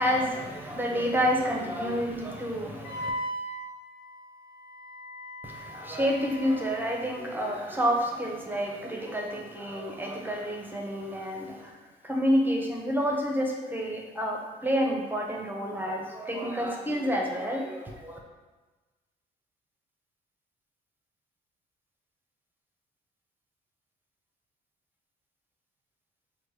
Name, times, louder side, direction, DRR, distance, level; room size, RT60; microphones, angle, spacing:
voice 1, 0.0-3.1 5.4-11.7 12.0-18.2, equal, 10° right, 0 dB, 0.6 m, -29 dB
Wind instrument woodwind instrument, 2.8-7.5, equal, 60° left, 0.6 m, -39 dB
5.1 x 2.1 x 3.2 m, 1.3 s
cardioid pair, 90°, 20 cm